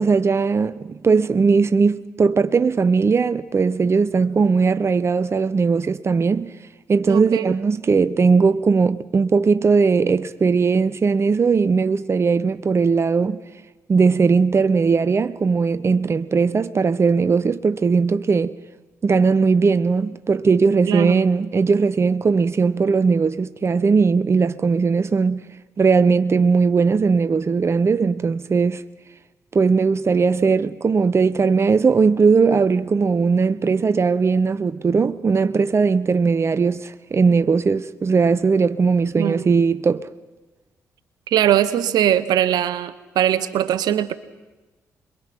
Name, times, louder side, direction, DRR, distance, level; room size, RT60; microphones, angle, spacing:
voice 1, 0.0-6.5 6.9-13.4 13.9-18.5 19.0-25.4 25.8-28.8 29.5-40.1, right 5 dB, 40° right, 0.8 m, -18 dB
voice 2, 7.1-7.6 20.9-21.2 39.2-39.5 41.3-44.1, right 11 dB, 70° right, 1.0 m, -21 dB
26.5 x 22.5 x 6.1 m
hypercardioid pair, 45°, 7 cm